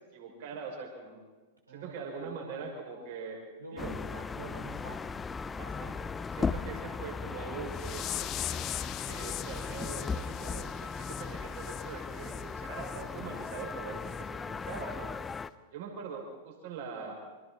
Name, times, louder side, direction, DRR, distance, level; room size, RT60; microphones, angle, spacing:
voice 1, 0.1-1.2 1.7-3.4 3.7-4.0 5.6-8.1 9.1-15.1 15.7-17.1, right 5 dB, 50° right, 1 dB, 5.9 m, -42 dB
voice 2, 1.7-2.6 3.6-5.1, right 3 dB, 85° right, -2 dB, 5.9 m, -47 dB
sound 1, 3.8-15.5, left 5 dB, 15° left, 0.7 m, -37 dB
Starsplash Flicker, 7.7-12.4 12.8-13.0 13.5-13.6 14.1-14.2 14.7-14.8, left 13 dB, 35° left, 1.2 m, -41 dB
27.5 x 26.0 x 4.3 m, 1.3 s
figure-of-eight pair, 95°, 0 cm